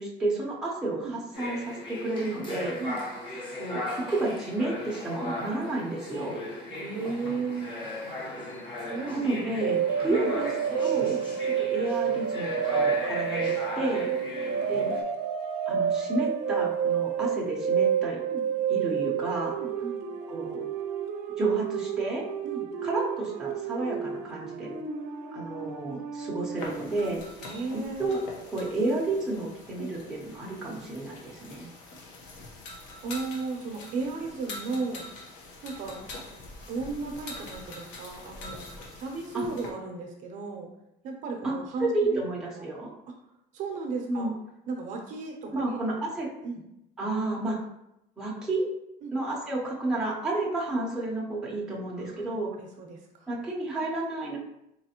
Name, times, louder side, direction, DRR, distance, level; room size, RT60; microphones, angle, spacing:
voice 1, 0.0-2.8 3.6-6.4 9.1-10.5 10.8-11.2 11.6-13.5 13.8-14.1 14.7-14.9 15.7-18.2 18.7-19.6 20.3-20.6 21.4-22.2 22.8-24.7 25.3-27.2 28.0-28.2 28.5-31.7 39.3-39.4 41.4-41.5 41.8-42.9 44.1-44.3 45.5-46.3 47.0-47.6 48.2-48.7 49.1-52.5 53.3-54.4, right 2 dB, 5° right, -5 dB, 0.6 m, -31 dB
sound 1, 1.3-15.0, left 2 dB, 30° left, 0.8 m, -37 dB
voice 2, 6.7-7.7 8.8-9.3 9.8-10.3 10.8-11.3 13.7-14.7 18.3-18.5 19.6-20.0 22.4-22.7 25.9-26.0 27.4-28.2 29.8-29.9 33.0-35.0 35.6-36.0 36.6-38.7 39.0-40.7 41.0-42.2 42.6-42.7 43.5-44.3 44.7-45.8 46.4-46.6 49.0-49.1 51.9-52.3 52.6-53.3, right 4 dB, 45° right, 2 dB, 0.6 m, -35 dB
sound 2, 9.6-27.0, right 8 dB, 85° right, 0.5 m, -30 dB
sound 3, 26.6-39.7, left 2 dB, 85° left, 1.0 m, -44 dB
4.1 x 3.1 x 2.9 m, 0.85 s
cardioid pair, 175°, 18 cm